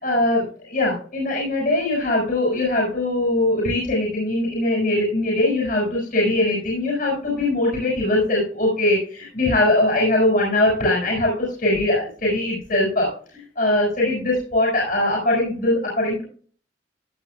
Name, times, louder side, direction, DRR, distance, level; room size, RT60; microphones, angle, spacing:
voice 1, 0.0-16.2, left 1 dB, 45° left, -3 dB, 6.2 m, -21 dB
16.5 x 10.0 x 2.3 m, 0.43 s
head